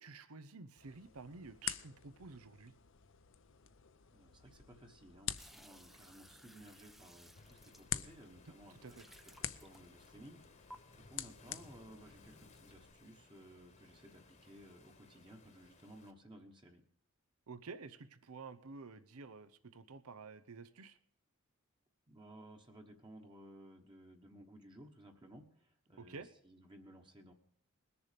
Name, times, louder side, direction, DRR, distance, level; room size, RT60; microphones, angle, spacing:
voice 1, 0.0-2.7 8.8-9.0 17.5-21.0 26.0-26.3, right 4 dB, 85° right, 12 dB, 0.8 m, -51 dB
sound 1, 0.8-12.9, left 11 dB, 60° left, 0.6 m, -48 dB
voice 2, 4.1-16.8 22.1-27.3, right 1 dB, 20° right, 2 dB, 1.2 m, -57 dB
sound 2, 5.4-8.3 8.8-10.2 10.7-10.8, equal, ahead, 0.5 m, -59 dB
Waves surf, 7.4-16.1, left 3 dB, 35° left, 1.3 m, -63 dB
21.0 x 7.0 x 5.1 m, 0.67 s
head